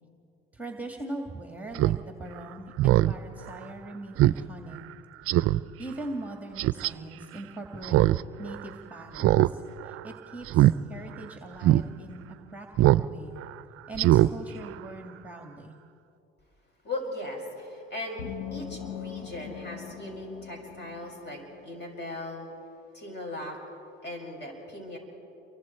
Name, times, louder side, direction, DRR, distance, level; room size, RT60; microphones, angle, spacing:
voice 1, 0.5-4.8 5.3-8.0 8.4-12.2 12.5-12.7 12.9-13.4 13.9-15.7, right 2 dB, 5° right, 3 dB, 2.1 m, -41 dB
Speech synthesizer, 1.7-2.0 2.4-2.5 2.8-3.1 3.5-3.6 4.2-4.4 4.7-4.8 5.3-5.6 6.6-6.9 7.8-8.2 8.5-8.6 9.2-9.5 9.8-10.0 10.5-10.7 11.2-11.3 11.6-11.8 12.8-13.1 13.4-13.5 13.9-14.3 14.6-14.7, right 15 dB, 50° right, 0.5 m, -21 dB
voice 2, 16.8-18.2 18.5-22.5 22.9-23.6 24.0-25.0, left 1 dB, 35° left, 1 dB, 6.6 m, -38 dB
sound 1, 18.2-21.7, left 9 dB, 75° left, 1.5 m, -41 dB
29.0 x 23.5 x 4.5 m, 2.7 s
hypercardioid pair, 70°, 29 cm